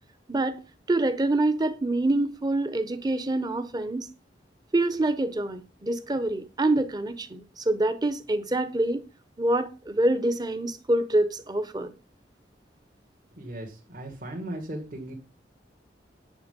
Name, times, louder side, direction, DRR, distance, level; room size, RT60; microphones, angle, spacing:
voice 1, 0.3-0.6 0.9-4.1 4.7-9.0 9.4-11.9, right 2 dB, 25° right, 0.9 m, -26 dB
voice 2, 13.4-15.1, right 1 dB, 50° right, 2.4 m, -37 dB
10.0 x 6.8 x 5.3 m
head